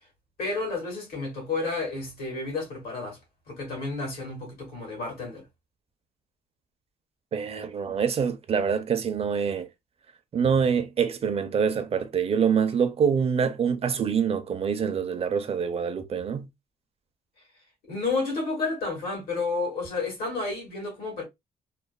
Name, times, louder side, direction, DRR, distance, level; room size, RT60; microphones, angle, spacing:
voice 1, 0.4-3.2 3.5-5.4 17.9-21.2, left 3 dB, 85° left, 1.7 m, -31 dB
voice 2, 7.3-9.7 10.3-16.5, right 6 dB, 40° right, 0.5 m, -25 dB
3.1 x 2.1 x 2.3 m
cardioid pair, 110°, 15 cm